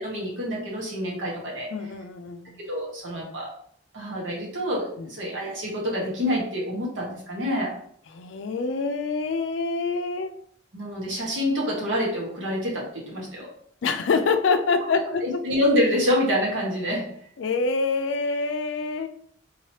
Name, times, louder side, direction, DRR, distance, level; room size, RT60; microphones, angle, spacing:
voice 1, 0.0-1.7 2.7-3.5 3.9-7.7 10.7-13.5 15.2-17.1, equal, 75° right, -3 dB, 1.4 m, -27 dB
voice 2, 1.7-2.6 5.0-5.1 8.1-10.3 13.8-15.4 17.4-19.1, left 4 dB, 70° left, 7 dB, 0.4 m, -26 dB
3.8 x 2.8 x 3.1 m, 0.63 s
head